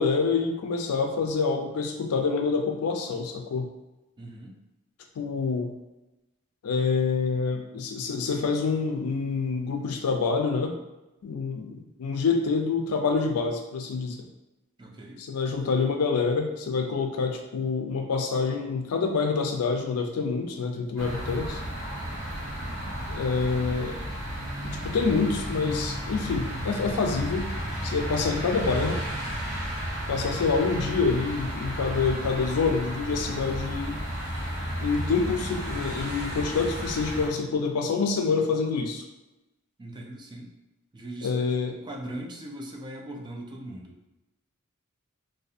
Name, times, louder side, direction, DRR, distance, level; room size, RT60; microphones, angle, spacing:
voice 1, 0.0-3.7 5.2-5.7 6.6-10.7 11.2-14.3 15.2-21.6 23.1-24.0 24.6-27.5 27.8-29.0 30.1-34.0 34.8-39.0 41.2-41.7, left 4 dB, 90° left, 4 dB, 0.4 m, -27 dB
voice 2, 4.2-4.6 14.8-15.2 22.6-22.9 39.8-40.5 40.9-44.0, right 1 dB, 20° right, 0 dB, 0.3 m, -40 dB
sound 1, 21.0-37.3, equal, 75° right, 1.1 m, -33 dB
2.6 x 2.3 x 2.4 m, 1.0 s
head